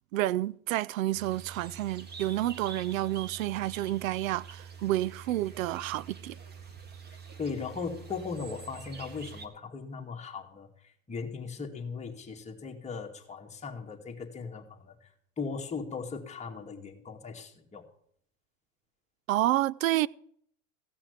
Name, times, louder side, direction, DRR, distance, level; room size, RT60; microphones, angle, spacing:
voice 1, 0.1-6.4 19.3-20.1, right 15 dB, 85° right, 0.5 m, -29 dB
sound 1, 1.1-9.5, right 6 dB, 25° right, 1.6 m, -46 dB
voice 2, 7.4-15.1 15.4-17.9, left 5 dB, 15° left, 2.2 m, -38 dB
15.5 x 5.8 x 8.3 m
hypercardioid pair, 110°, 39 cm